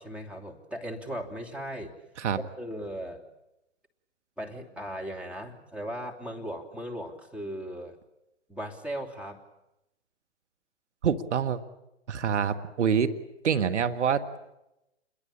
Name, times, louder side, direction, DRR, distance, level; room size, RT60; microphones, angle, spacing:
voice 1, 0.0-1.9 2.4-3.2 4.4-7.9 8.5-9.4, equal, 5° right, 0 dB, 3.1 m, -37 dB
voice 2, 11.0-11.6 12.1-13.1 13.4-14.2, right 7 dB, 75° right, 9 dB, 1.9 m, -26 dB
27.5 x 22.5 x 8.7 m, 0.90 s
hypercardioid pair, 125°, 35 cm